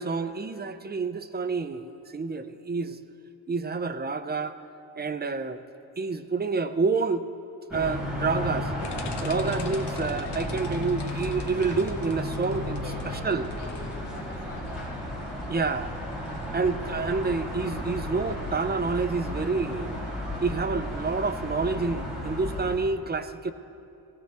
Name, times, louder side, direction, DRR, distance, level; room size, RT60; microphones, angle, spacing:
voice 1, 0.0-3.0 3.5-4.6 5.0-5.6 6.0-7.3 7.7-8.7 9.2-12.8 13.2-13.5 15.5-15.9 16.5-19.9 20.4-23.5, right 4 dB, 25° right, 9 dB, 0.5 m, -28 dB
sound 1, 7.7-22.7, left 1 dB, ahead, 3.5 m, -33 dB
sound 2, 8.4-9.0, equal, 65° left, 1.3 m, -40 dB
sound 3, 8.8-21.4, left 5 dB, 90° left, 1.2 m, -46 dB
voice 2, 12.8-15.1, left 2 dB, 50° left, -3 dB, 3.1 m, -45 dB
18.5 x 16.0 x 3.5 m, 2.7 s
wide cardioid pair, 130°, 40 cm